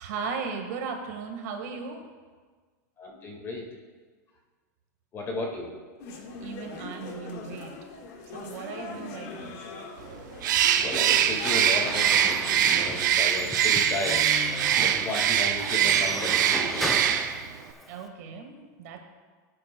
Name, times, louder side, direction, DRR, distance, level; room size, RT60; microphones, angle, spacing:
voice 1, 0.0-2.0 6.4-7.7 8.3-9.6 17.9-19.0, right 5 dB, 55° right, 3 dB, 1.6 m, -36 dB
voice 2, 3.0-3.6 5.1-5.7 10.8-14.2 14.7-17.0, left 2 dB, 25° left, 0 dB, 1.8 m, -34 dB
sound 1, 6.0-11.7, left 4 dB, 50° left, 1.5 m, -41 dB
Bird, 10.4-17.5, right 10 dB, 80° right, 0.7 m, -23 dB
Squeak / Wood, 11.2-18.1, equal, ahead, 0.6 m, -35 dB
18.5 x 9.1 x 2.2 m, 1.5 s
supercardioid pair, 155°, 10 cm